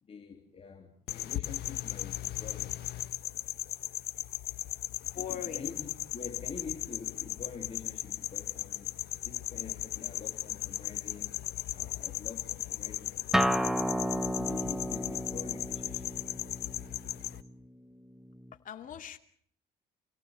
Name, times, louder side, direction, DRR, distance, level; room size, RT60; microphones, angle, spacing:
voice 1, 0.0-2.7 5.1-8.9 9.2-11.4 11.7-13.9 14.3-16.1, left 5 dB, 35° left, 2 dB, 3.3 m, -46 dB
sound 1, 1.1-17.4, left 14 dB, 70° left, 1.2 m, -37 dB
voice 2, 5.1-5.8 18.6-19.2, left 9 dB, 50° left, 6 dB, 2.6 m, -40 dB
Acoustic guitar, 13.3-18.5, equal, ahead, 1.0 m, -33 dB
28.5 x 17.5 x 8.3 m, 0.63 s
cardioid pair, 110°, 17 cm